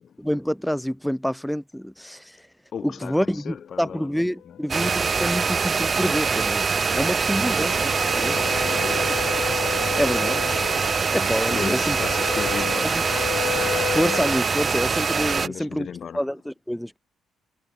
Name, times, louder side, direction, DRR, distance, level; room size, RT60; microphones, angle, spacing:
voice 1, 0.2-2.5 2.8-8.4 10.0-10.4 11.1-12.0 12.8-13.0 13.9-15.9 16.1-17.0, equal, ahead, 2.2 m, -27 dB
voice 2, 2.7-4.6 7.5-7.9 8.2-10.0 11.4-13.2 15.3-16.3, left 7 dB, 55° left, 1.8 m, -37 dB
sound 1, 4.5-14.4, left 13 dB, 80° left, 0.6 m, -33 dB
sound 2, 4.7-15.5, right 5 dB, 40° right, 0.5 m, -24 dB
cardioid pair, 90°, 0 cm